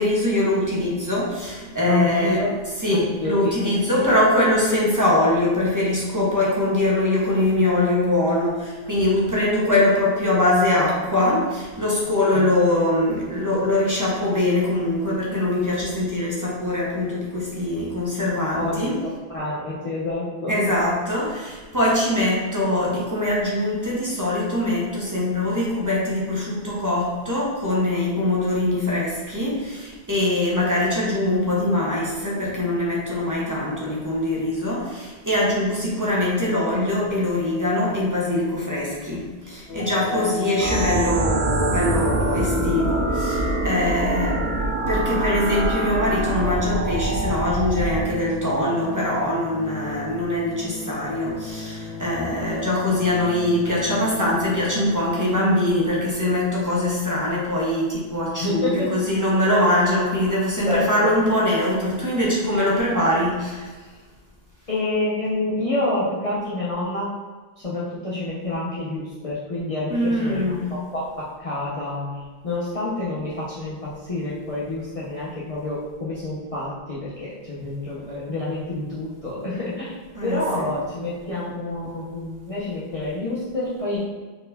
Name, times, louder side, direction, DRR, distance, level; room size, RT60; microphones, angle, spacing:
voice 1, 0.0-2.4 2.8-18.9 20.5-44.4 44.9-63.7 69.9-70.7 80.2-80.6, left 1 dB, 20° right, -6 dB, 1.0 m, -22 dB
voice 2, 1.9-2.5 2.9-3.5 6.4-6.5 12.3-12.5 18.5-18.9 19.3-20.6 58.4-58.9 60.6-60.9 64.7-67.1 67.6-70.4 70.7-84.0, left 2 dB, 40° left, -8 dB, 0.8 m, -28 dB
sound 1, 39.7-55.4, left 2 dB, 85° left, 1.3 m, -33 dB
sound 2, 40.6-48.0, right 2 dB, 75° right, 0.9 m, -25 dB
4.5 x 4.2 x 2.7 m, 1.3 s
omnidirectional pair, 1.1 m